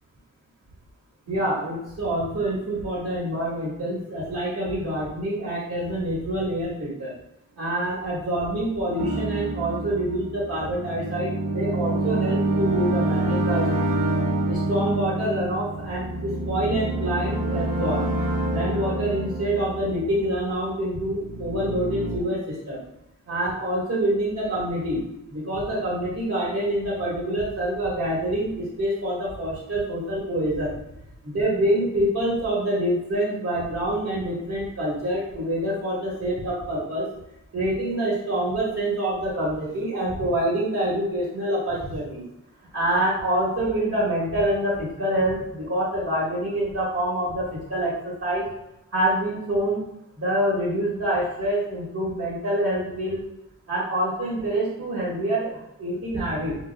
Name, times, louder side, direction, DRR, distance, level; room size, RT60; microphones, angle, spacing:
voice 1, 1.3-7.1 7.5-13.7 14.5-18.0 18.5-22.8 23.3-25.0 25.3-30.7 31.2-37.1 37.5-42.2 42.7-48.5 48.9-49.8 50.1-53.2 53.7-56.6, right 1 dB, 55° right, -6 dB, 1.6 m, -26 dB
sound 1, 9.0-20.6 21.1-22.2, right 2 dB, 80° right, 0.7 m, -27 dB
7.3 x 2.9 x 2.3 m, 0.87 s
wide cardioid pair, 130°, 32 cm